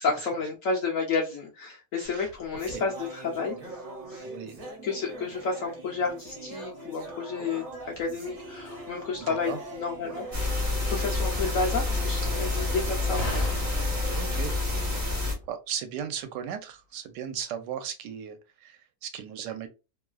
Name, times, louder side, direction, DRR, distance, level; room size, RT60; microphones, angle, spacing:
voice 1, 0.0-3.8 4.1-4.3 4.8-7.7 8.0-13.6, left 4 dB, 70° left, 0.8 m, -31 dB
sound 1, 2.0-15.5, right 1 dB, 45° right, 0.8 m, -42 dB
voice 2, 2.0-2.3 2.7-2.8 4.2-4.6 9.2-9.6 14.1-14.5 15.5-19.7, right 8 dB, 80° right, 1.2 m, -36 dB
Slam, 7.7-15.3, equal, 35° left, 0.6 m, -42 dB
sound 2, 10.3-15.3, left 2 dB, 15° right, 0.5 m, -28 dB
3.0 x 2.3 x 2.4 m
omnidirectional pair, 1.9 m